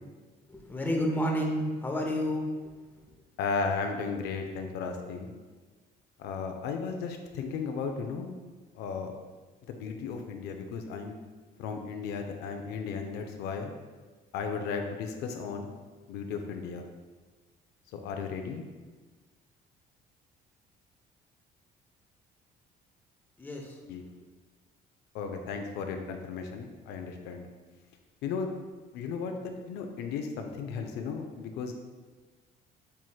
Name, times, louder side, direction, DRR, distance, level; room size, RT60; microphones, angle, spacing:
voice 1, 0.5-2.4 23.4-23.6, equal, 10° left, 0 dB, 0.6 m, -29 dB
voice 2, 3.4-5.3 6.2-8.3 8.7-9.2 9.7-11.2 11.6-13.7 14.3-15.7 16.1-16.9 17.9-18.6 23.9-24.0 25.1-27.5 28.2-28.5 28.9-29.3 29.7-31.7, left 5 dB, 80° left, 4 dB, 0.4 m, -35 dB
5.5 x 3.1 x 2.3 m, 1.3 s
cardioid pair, 110°, 17 cm